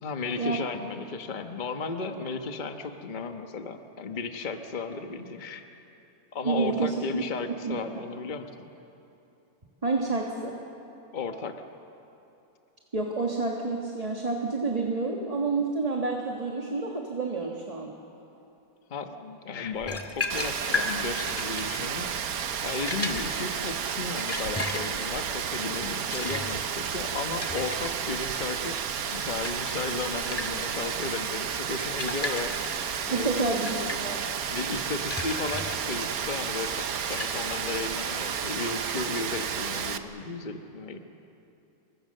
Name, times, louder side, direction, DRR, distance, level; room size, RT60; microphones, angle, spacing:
voice 1, 0.0-5.6 6.3-8.7 11.1-11.6 18.9-22.1 22.6-28.7 29.1-32.5 33.1-33.4 34.5-41.0, left 4 dB, 30° left, 6 dB, 1.2 m, -34 dB
voice 2, 6.4-7.2 7.6-7.8 9.8-10.5 12.9-17.9 33.1-34.2, right 3 dB, 25° right, 1 dB, 1.6 m, -29 dB
sound 1, 19.8-38.0, left 2 dB, 10° left, 1.7 m, -37 dB
Rain, 20.3-40.0, right 7 dB, 65° right, 1.4 m, -32 dB
28.5 x 23.0 x 6.6 m, 2.8 s
omnidirectional pair, 1.7 m